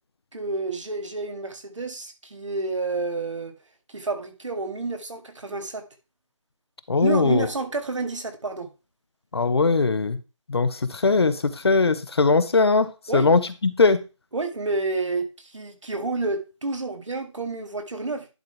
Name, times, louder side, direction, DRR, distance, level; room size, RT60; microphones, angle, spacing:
voice 1, 0.3-3.5 3.9-5.8 7.0-8.7 13.1-13.3 14.3-18.3, right 3 dB, 70° right, 6 dB, 1.9 m, -29 dB
voice 2, 6.9-7.5 9.3-10.2 10.5-12.9 13.1-14.0, left 4 dB, 50° left, 12 dB, 0.9 m, -20 dB
10.5 x 3.8 x 4.5 m, 0.29 s
figure-of-eight pair, 165°, 16 cm